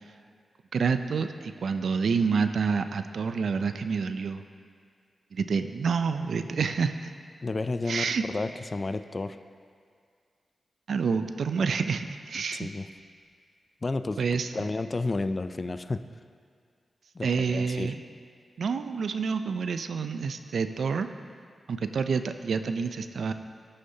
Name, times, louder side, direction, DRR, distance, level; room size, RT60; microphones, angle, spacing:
voice 1, 0.7-4.4 5.3-7.1 7.9-8.2 10.9-12.7 14.2-14.5 17.2-18.0 18.6-21.1 21.7-23.3, right 5 dB, 80° right, 9 dB, 0.4 m, -28 dB
voice 2, 7.4-9.4 12.5-12.9 13.8-14.2 14.5-16.0 17.1-17.9, left 3 dB, 35° left, 10 dB, 0.3 m, -31 dB
14.0 x 6.5 x 2.8 m, 2.2 s
wide cardioid pair, 95°, 0 cm